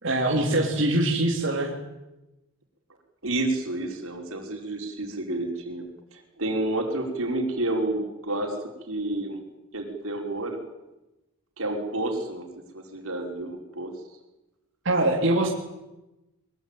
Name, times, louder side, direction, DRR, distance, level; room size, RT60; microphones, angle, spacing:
voice 1, 0.0-1.7 14.8-15.5, right 1 dB, 55° right, -2 dB, 3.3 m, -23 dB
voice 2, 3.2-5.9 6.1-9.4 9.7-10.6 11.6-12.5 12.7-13.9, right 2 dB, 80° right, 2 dB, 5.5 m, -30 dB
23.5 x 22.5 x 9.2 m, 1.0 s
head